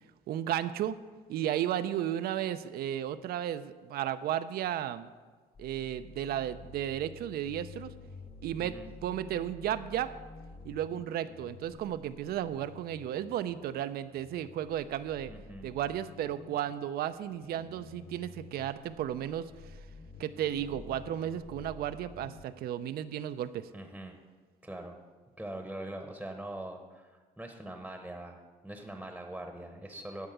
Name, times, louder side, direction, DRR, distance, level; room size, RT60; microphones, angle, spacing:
voice 1, 0.3-1.0 1.3-5.1 5.6-7.9 8.4-10.1 10.6-15.3 15.6-19.8 20.2-23.7, right 11 dB, 65° right, 11 dB, 0.5 m, -34 dB
sound 1, 5.5-22.4, left 4 dB, 35° left, 0.7 m, -50 dB
voice 2, 15.3-15.7 23.7-24.2 24.6-25.0 25.4-30.3, right 1 dB, 5° right, 4 dB, 0.9 m, -42 dB
11.5 x 4.6 x 7.8 m, 1.4 s
cardioid pair, 110°, 17 cm